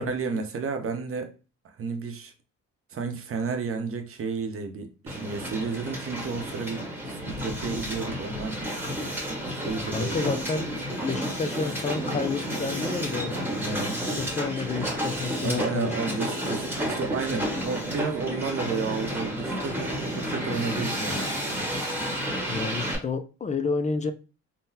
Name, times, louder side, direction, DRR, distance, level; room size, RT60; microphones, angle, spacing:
voice 1, 0.0-1.3 1.6-2.3 2.9-6.8 7.1-8.7 9.5-10.3 13.5-14.1 15.4-21.3, right 5 dB, 45° right, 0.7 m, -32 dB
Hiss, 5.1-22.9, equal, 5° right, 1.1 m, -31 dB
voice 2, 9.9-10.7 11.0-13.5 14.2-16.2 21.2-21.3 22.5-24.1, left 4 dB, 25° left, 0.4 m, -30 dB
3.8 x 2.1 x 2.7 m
cardioid pair, 90°, 30 cm